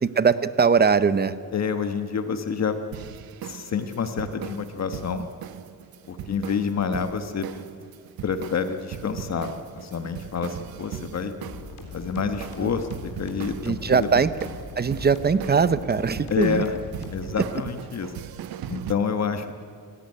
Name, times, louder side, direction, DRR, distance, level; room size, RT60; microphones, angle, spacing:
voice 1, 0.0-1.4 12.6-12.7 13.6-14.3 14.8-16.6, right 5 dB, 25° right, 14 dB, 0.8 m, -21 dB
voice 2, 1.5-2.8 3.4-5.3 6.1-7.5 8.2-11.3 11.9-14.1 16.3-16.7 17.1-18.1 18.7-19.6, left 6 dB, 50° left, 8 dB, 1.3 m, -28 dB
sound 1, 2.9-18.9, right 11 dB, 80° right, 1.0 m, -39 dB
sound 2, 11.4-17.4, left 3 dB, 75° left, 4.0 m, -41 dB
28.0 x 17.5 x 9.7 m, 2.3 s
wide cardioid pair, 150°, 36 cm